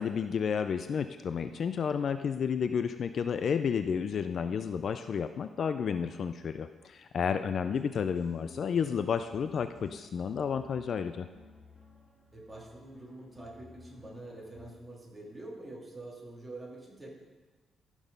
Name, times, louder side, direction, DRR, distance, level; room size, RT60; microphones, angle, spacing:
voice 1, 0.0-11.3, left 7 dB, 50° left, 10 dB, 0.4 m, -31 dB
sound 1, 7.6-14.7, left 2 dB, 20° left, 2.0 m, -55 dB
voice 2, 12.3-17.1, right 2 dB, 15° right, -3 dB, 2.7 m, -46 dB
14.0 x 6.2 x 5.3 m, 1.2 s
cardioid pair, 120°, 0 cm